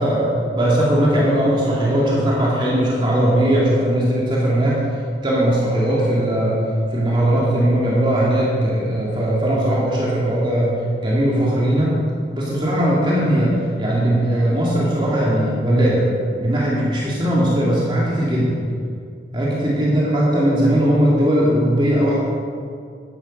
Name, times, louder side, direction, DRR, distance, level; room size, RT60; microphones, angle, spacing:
voice 1, 0.0-4.8 5.2-6.6 6.9-10.8 11.0-12.0 12.3-16.1 16.4-18.5 19.3-22.2, right 1 dB, 25° right, -5 dB, 2.3 m, -19 dB
13.5 x 11.0 x 5.2 m, 2.3 s
head